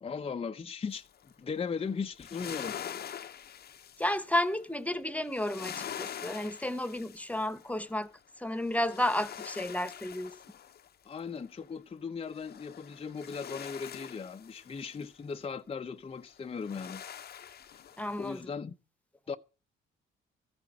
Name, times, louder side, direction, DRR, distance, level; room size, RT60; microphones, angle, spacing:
voice 1, 0.0-1.1 1.4-2.8 11.0-17.0 18.2-18.7 19.3-19.4, left 5 dB, 30° left, 0.7 m, -37 dB
sound 1, 0.9-1.3 1.9-4.6 5.3-8.0 8.5-11.5 12.3-15.1 16.4-18.4, left 9 dB, 55° left, 0.9 m, -45 dB
voice 2, 4.0-8.1 8.4-10.3 18.0-18.4, left 1 dB, 5° left, 1.2 m, -32 dB
14.5 x 5.9 x 9.6 m
cardioid pair, 90°, 20 cm